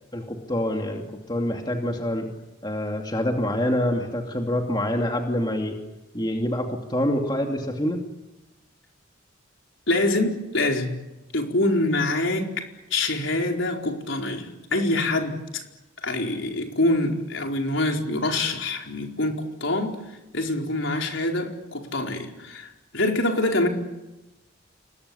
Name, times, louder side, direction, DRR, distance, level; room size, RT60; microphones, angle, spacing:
voice 1, 0.1-2.3 2.6-5.8 6.1-8.0, left 1 dB, 20° left, 2 dB, 2.7 m, -26 dB
voice 2, 9.9-10.9 11.3-15.6 16.0-20.0 20.3-23.7, left 2 dB, 70° left, 2 dB, 4.5 m, -25 dB
29.0 x 20.5 x 10.0 m, 1.0 s
head